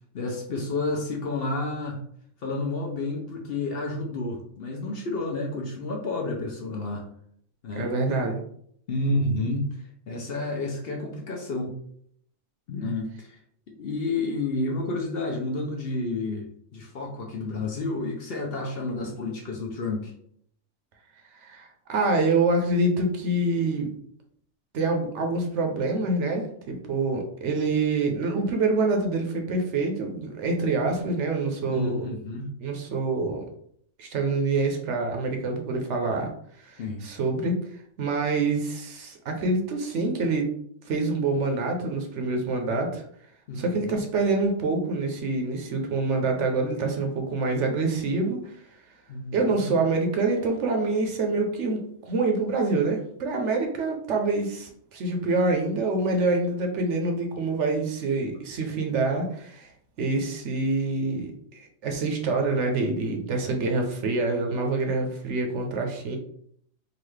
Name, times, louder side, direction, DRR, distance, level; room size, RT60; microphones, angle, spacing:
voice 1, 0.1-2.0 2.4-7.1 7.6-7.9 8.9-9.7 10.1-11.7 12.7-13.4 13.8-20.1 31.7-32.5 36.8-37.0 43.5-44.0 49.1-49.7, left 2 dB, 55° left, 0 dB, 0.8 m, -30 dB
voice 2, 7.7-8.4 21.4-23.9 24.7-32.1 32.6-33.5 34.0-36.3 36.6-37.6 38.0-40.5 40.9-43.0 43.6-48.6 49.3-59.7 60.0-66.2, right 3 dB, 70° right, 3 dB, 1.0 m, -26 dB
3.9 x 2.4 x 3.2 m, 0.66 s
omnidirectional pair, 1.3 m